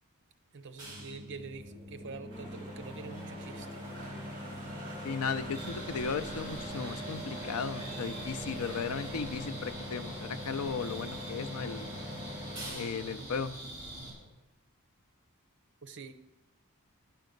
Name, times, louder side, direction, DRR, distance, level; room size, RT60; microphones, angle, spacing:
voice 1, 0.5-3.8 15.8-16.1, right 4 dB, 55° right, 9 dB, 0.6 m, -45 dB
sound 1, 0.8-14.3, equal, 20° right, 3.2 m, -43 dB
sound 2, 2.3-9.5, right 2 dB, 35° right, 2.6 m, -50 dB
voice 2, 5.0-11.9 12.7-13.5, left 5 dB, 80° left, 13 dB, 0.5 m, -36 dB
sound 3, 5.5-14.1, right 1 dB, 30° left, 4.0 m, -45 dB
10.0 x 5.8 x 5.2 m, 0.97 s
head